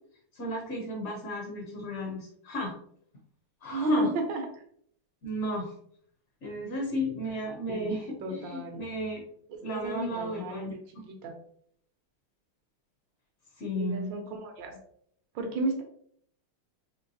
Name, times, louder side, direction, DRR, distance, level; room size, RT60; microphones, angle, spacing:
voice 1, 0.3-2.7 3.6-4.1 5.2-5.7 6.4-9.2 9.6-10.7 13.6-14.1, equal, 70° left, 0 dB, 0.7 m, -33 dB
voice 2, 3.7-4.5 7.8-7.9 8.2-8.8 9.5-10.8 11.1-11.3 13.7-14.8 15.3-15.8, right 1 dB, 70° right, 3 dB, 1.4 m, -32 dB
4.4 x 3.1 x 2.7 m, 0.64 s
omnidirectional pair, 2.3 m